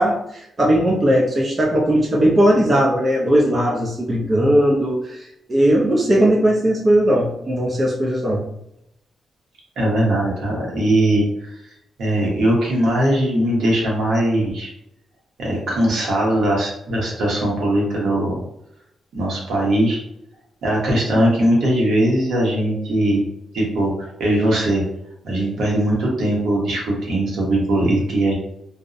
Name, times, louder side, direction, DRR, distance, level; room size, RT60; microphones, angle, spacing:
voice 1, 0.0-8.4, right 1 dB, 25° right, -3 dB, 0.4 m, -18 dB
voice 2, 9.8-11.6 12.0-14.7 15.4-18.4 19.2-20.0 20.6-23.2 23.5-24.8 25.2-28.3, right 1 dB, 80° right, -3 dB, 0.9 m, -20 dB
2.6 x 2.0 x 2.4 m, 0.80 s
wide cardioid pair, 150°, 0 cm